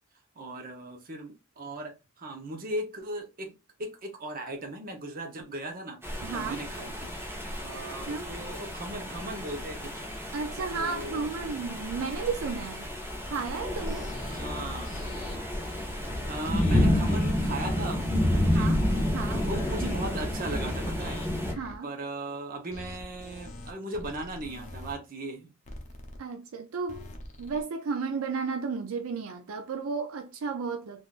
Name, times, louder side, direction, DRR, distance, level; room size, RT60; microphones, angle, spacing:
voice 1, 0.4-3.5 3.8-6.0 6.3-7.1 7.6-10.0 10.8-11.2 14.3-14.9 16.3-18.7 19.3-21.2 21.8-25.5, right 1 dB, 45° right, 0.8 m, -37 dB
sound 1, 6.0-21.5, left 1 dB, 10° right, 0.9 m, -30 dB
voice 2, 6.2-6.6 8.1-8.3 10.3-12.9 13.2-14.1 18.5-18.8 19.1-19.4 21.5-21.9 26.2-27.1 27.4-31.1, right 5 dB, 80° right, 0.4 m, -33 dB
sound 2, 13.6-21.8 22.7-24.9 25.6-26.2 26.9-27.6, left 2 dB, 35° left, 0.7 m, -43 dB
3.6 x 2.5 x 2.4 m
head